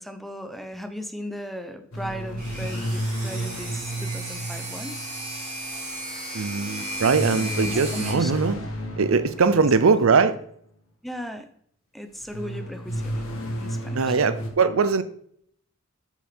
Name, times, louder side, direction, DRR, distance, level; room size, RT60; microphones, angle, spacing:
voice 1, 0.0-5.0 7.6-8.3 9.4-9.6 11.0-11.5 11.9-13.2 13.6-14.2, equal, ahead, 8 dB, 0.7 m, -36 dB
sound 1, 1.9-5.5 7.1-10.2 12.3-14.5, equal, 70° left, 1.5 m, -32 dB
sound 2, 2.4-8.1, right 1 dB, 40° right, 3.1 m, -35 dB
voice 2, 6.3-8.6 9.0-10.4 13.9-15.0, right 5 dB, 75° right, 13 dB, 0.6 m, -21 dB
8.2 x 6.0 x 4.4 m, 0.65 s
head